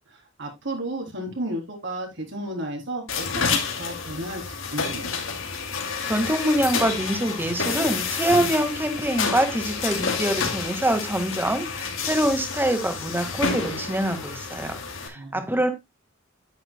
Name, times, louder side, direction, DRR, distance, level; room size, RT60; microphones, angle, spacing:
voice 1, 0.4-3.3 3.7-4.4 4.7-5.1 15.2-15.4, right 1 dB, 65° right, 2 dB, 3.7 m, -32 dB
sound 1, 3.1-15.1, left 5 dB, 90° left, 2.4 m, -29 dB
voice 2, 6.0-14.8 15.0-15.7, right 1 dB, 10° right, 7 dB, 1.8 m, -25 dB
9.5 x 9.3 x 2.2 m, 0.20 s
head